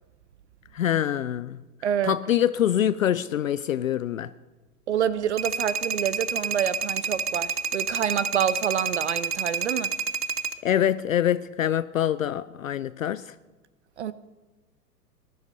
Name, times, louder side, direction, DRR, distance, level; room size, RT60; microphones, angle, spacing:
voice 1, 0.7-1.6 2.0-4.3 10.6-13.3, left 10 dB, 55° left, 0.6 m, -25 dB
voice 2, 1.8-2.1 4.9-9.9 14.0-14.1, right 9 dB, 45° right, 0.6 m, -27 dB
sound 1, 5.4-10.5, right 5 dB, 70° right, 1.0 m, -29 dB
19.5 x 12.0 x 5.5 m
figure-of-eight pair, 105°, 48 cm